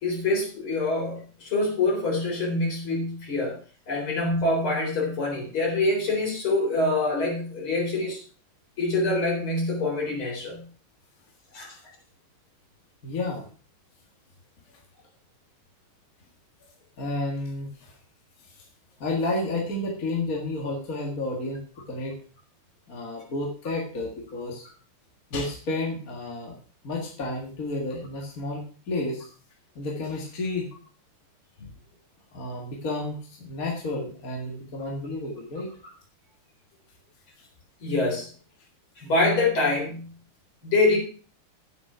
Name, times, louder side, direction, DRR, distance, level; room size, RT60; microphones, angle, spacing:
voice 1, 0.0-3.6 3.9-8.2 8.8-10.7 11.5-11.7 37.8-38.3 39.0-40.1 40.6-41.0, left 2 dB, 65° left, -1 dB, 4.7 m, -25 dB
voice 2, 13.0-13.4 17.0-17.9 19.0-22.2 22.9-24.7 25.3-26.5 26.8-29.3 29.8-30.7 32.3-35.7, left 2 dB, 40° left, -1 dB, 2.1 m, -31 dB
9.5 x 8.0 x 4.9 m, 0.40 s
omnidirectional pair, 2.4 m